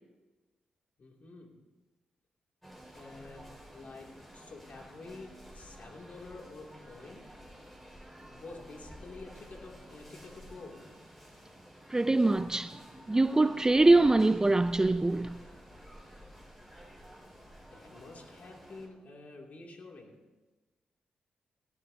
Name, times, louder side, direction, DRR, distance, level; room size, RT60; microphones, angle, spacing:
voice 1, 1.0-1.6 2.9-7.3 8.3-10.9 17.7-20.2, left 3 dB, 55° left, 2.6 m, -49 dB
sound 1, 2.6-18.9, equal, 5° left, 4.9 m, -52 dB
voice 2, 11.9-12.8 13.1-15.4, right 2 dB, 20° right, 0.4 m, -23 dB
17.5 x 15.5 x 2.8 m
supercardioid pair, 50°, 3 cm